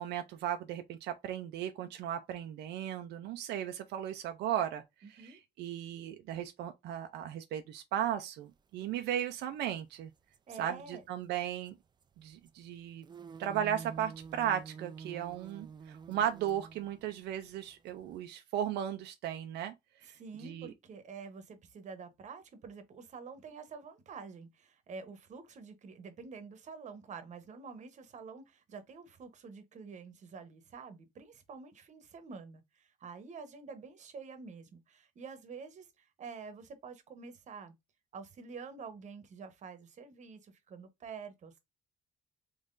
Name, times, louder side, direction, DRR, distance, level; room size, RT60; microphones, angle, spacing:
voice 1, 0.0-4.8 5.1-10.1 10.6-11.8 12.2-13.0 13.4-19.7 20.1-20.2 20.4-20.7, right 10 dB, 85° right, 0.5 m, -36 dB
voice 2, 5.0-5.4 10.5-11.0 20.0-37.7 38.1-41.6, right 5 dB, 45° right, 0.9 m, -48 dB
sound 1, 9.2-9.3 9.6-9.8 10.2-10.4 11.7-12.1 12.5-12.6 12.8-18.2, right 5 dB, 25° right, 0.3 m, -48 dB
3.7 x 3.1 x 2.5 m
cardioid pair, 130°, 17 cm